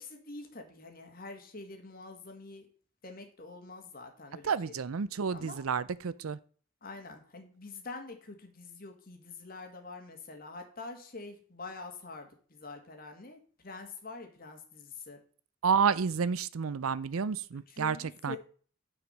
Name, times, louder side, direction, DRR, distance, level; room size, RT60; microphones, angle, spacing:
voice 1, 0.0-2.7 3.0-4.7 5.3-5.6 6.8-15.2 17.7-18.4, left 3 dB, 45° left, 2.0 m, -46 dB
voice 2, 4.4-6.4 15.6-18.4, right 6 dB, 90° right, 0.5 m, -30 dB
9.6 x 5.0 x 6.7 m
head